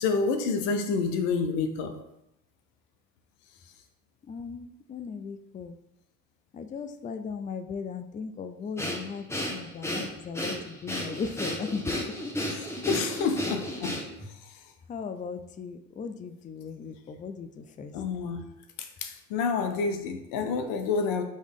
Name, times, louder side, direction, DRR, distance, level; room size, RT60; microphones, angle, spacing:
voice 1, 0.0-2.0 12.5-14.0 17.9-18.4 18.8-21.2, left 4 dB, 85° left, 7 dB, 0.6 m, -28 dB
voice 2, 4.3-5.7 6.5-9.2 9.5-12.0 14.9-17.9, left 5 dB, 25° left, 9 dB, 0.4 m, -37 dB
Breathing, 8.8-14.3, left 1 dB, 10° left, 1.1 m, -33 dB
3.8 x 3.1 x 3.6 m, 0.85 s
supercardioid pair, 65°, 34 cm